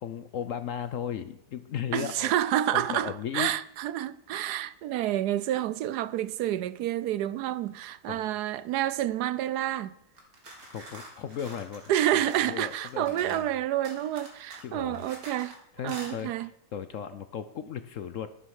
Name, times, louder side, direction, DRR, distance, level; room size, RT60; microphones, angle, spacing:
voice 1, 0.0-2.3 2.7-3.5 8.1-8.3 10.7-13.5 14.6-15.0 15.8-18.3, left 8 dB, 65° left, 0.8 m, -36 dB
voice 2, 1.9-9.9 11.9-15.5 15.8-16.5, right 12 dB, 75° right, 1.1 m, -29 dB
sound 1, 10.1-13.5 13.8-15.6 15.9-16.1, right 1 dB, 55° right, 2.9 m, -46 dB
11.0 x 8.5 x 6.5 m
omnidirectional pair, 1.8 m